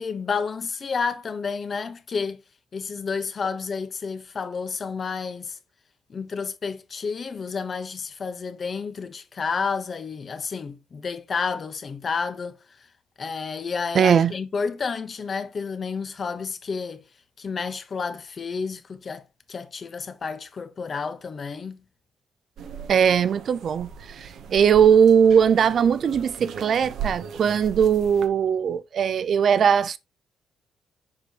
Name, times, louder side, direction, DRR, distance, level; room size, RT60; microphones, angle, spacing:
voice 1, 0.0-2.4 2.7-5.6 6.1-12.6 13.2-17.0 17.4-19.2 19.5-21.8, left 5 dB, 40° left, 1.0 m, -30 dB
voice 2, 13.9-14.3 22.9-30.0, right 7 dB, 55° right, 0.5 m, -19 dB
sound 1, 22.6-28.3, right 7 dB, 75° right, 0.9 m, -38 dB
6.9 x 5.2 x 3.0 m
cardioid pair, 90°, 0 cm